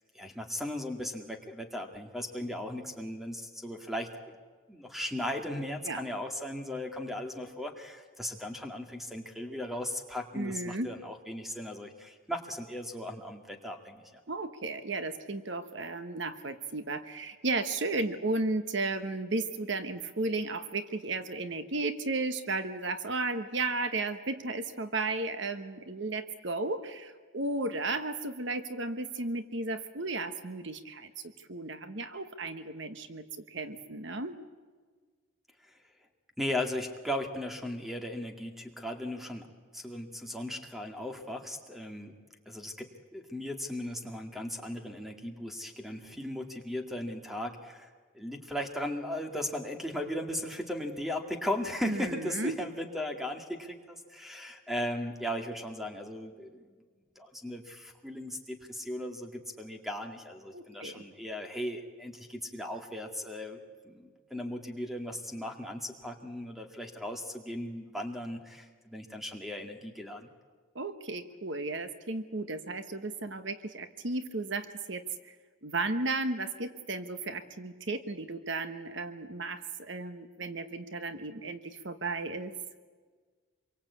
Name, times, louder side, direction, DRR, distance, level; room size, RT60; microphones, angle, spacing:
voice 1, 0.1-4.1 4.7-14.2 35.6-35.8 36.4-39.5 39.7-42.2 42.5-47.9 48.1-56.7 57.2-63.6 63.8-70.3, left 1 dB, ahead, 4 dB, 2.1 m, -37 dB
voice 2, 10.3-10.9 14.3-34.4 51.8-52.6 60.5-61.0 70.7-75.3 75.6-82.5, right 3 dB, 60° right, 9 dB, 1.2 m, -34 dB
26.5 x 23.5 x 8.5 m, 1.5 s
head